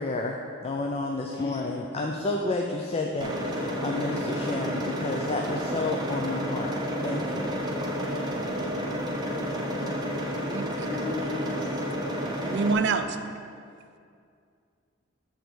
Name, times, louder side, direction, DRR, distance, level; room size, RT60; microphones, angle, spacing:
voice 1, 0.0-6.7 7.0-7.6, left 2 dB, 30° left, 2 dB, 0.4 m, -31 dB
voice 2, 1.1-1.8 10.8-11.8, left 4 dB, 55° left, -1 dB, 1.3 m, -39 dB
sound 1, 3.2-12.7, equal, 20° right, 0.7 m, -30 dB
voice 3, 9.8-10.9 12.4-13.2, right 4 dB, 55° right, 9 dB, 0.4 m, -29 dB
8.1 x 4.0 x 6.2 m, 2.3 s
head